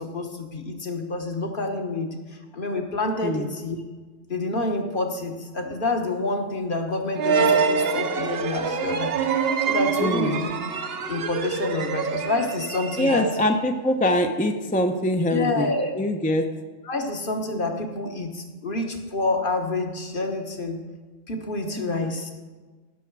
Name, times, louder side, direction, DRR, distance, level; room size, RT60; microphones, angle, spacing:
voice 1, 0.0-2.1 2.5-3.8 4.3-9.1 9.6-10.5 11.1-13.3 15.3-15.9 16.8-20.8 21.3-22.3, left 2 dB, 50° left, 3 dB, 1.3 m, -28 dB
sound 1, 7.2-13.6, right 5 dB, 65° right, 1.0 m, -25 dB
voice 2, 10.0-10.4 13.0-16.4 21.8-22.1, left 1 dB, 10° left, 5 dB, 0.5 m, -24 dB
16.5 x 6.9 x 4.7 m, 1.3 s
omnidirectional pair, 1.2 m